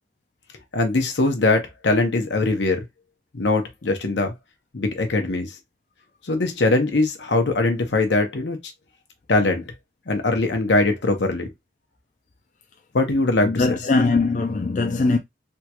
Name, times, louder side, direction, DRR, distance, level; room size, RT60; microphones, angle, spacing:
voice 1, 0.7-2.8 3.3-4.3 4.7-5.5 6.2-8.6 9.3-9.6 10.1-11.5 12.9-13.8, left 2 dB, 85° left, 0.9 m, -21 dB
voice 2, 13.4-15.2, left 3 dB, 45° left, 0.4 m, -21 dB
3.6 x 2.3 x 2.9 m
head